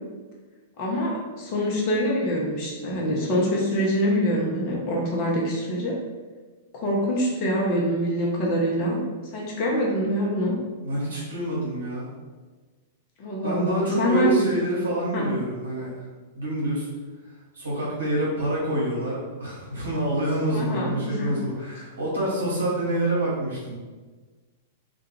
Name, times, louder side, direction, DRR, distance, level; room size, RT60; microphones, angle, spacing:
voice 1, 0.8-5.9 6.7-9.0 9.3-10.5 13.2-14.5 15.1-15.3 20.5-21.3, equal, 40° left, -3 dB, 0.7 m, -25 dB
voice 2, 10.8-12.1 13.4-16.0 16.3-16.9 17.5-23.7, right 1 dB, 70° right, -6 dB, 0.9 m, -27 dB
2.3 x 2.3 x 3.1 m, 1.3 s
figure-of-eight pair, 100°, 0 cm